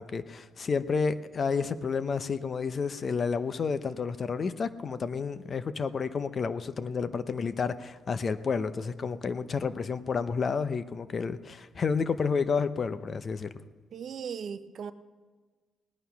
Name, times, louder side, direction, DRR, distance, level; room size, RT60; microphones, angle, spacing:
voice 1, 0.0-13.5, left 5 dB, 45° left, 0.7 m, -30 dB
voice 2, 13.9-14.9, right 7 dB, 60° right, 0.7 m, -37 dB
18.5 x 9.3 x 5.8 m
cardioid pair, 90°, 0 cm